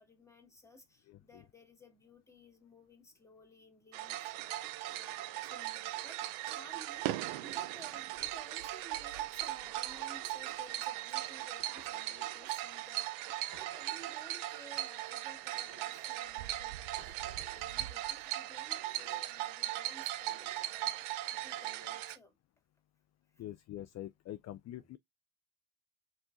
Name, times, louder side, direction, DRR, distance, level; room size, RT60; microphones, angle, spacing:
voice 1, 0.0-22.4 23.3-23.4, left 1 dB, 5° left, 2.0 m, -57 dB
voice 2, 1.1-1.4 23.4-25.0, left 13 dB, 35° left, 0.4 m, -45 dB
sound 1, 3.9-22.2, right 15 dB, 75° right, 0.7 m, -39 dB
sound 2, 10.0-10.6 11.6-12.6 13.5-14.2 15.5-16.2 17.0-17.7 18.6-19.3 20.2-20.7 21.5-22.0, right 4 dB, 25° right, 2.0 m, -59 dB
4.4 x 4.3 x 2.4 m
hypercardioid pair, 65°, 49 cm